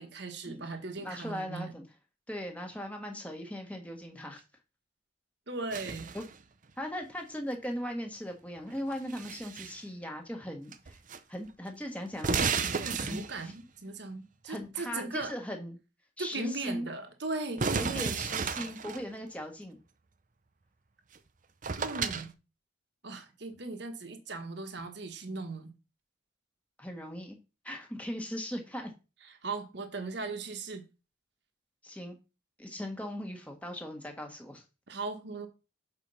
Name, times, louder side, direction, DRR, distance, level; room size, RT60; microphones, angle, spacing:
voice 1, 0.0-1.7 5.5-6.1 12.7-15.3 16.2-18.1 21.8-22.3 23.0-25.7 29.4-30.8 34.9-35.5, right 3 dB, 60° right, 1.2 m, -38 dB
voice 2, 1.0-1.8 2.3-4.4 6.1-6.2 6.8-11.0 11.3-12.4 13.0-13.5 14.4-15.8 16.2-16.9 17.8-19.8 26.8-27.4 27.6-28.9 31.8-32.2 32.6-34.6, equal, 5° left, 1.4 m, -38 dB
sound 1, 5.7-6.4 8.7-9.8 10.7-11.2 11.5-11.6 12.1-13.5 17.6-19.0 21.1-21.2 21.6-22.3, right 5 dB, 40° right, 0.6 m, -33 dB
6.8 x 4.5 x 5.5 m
head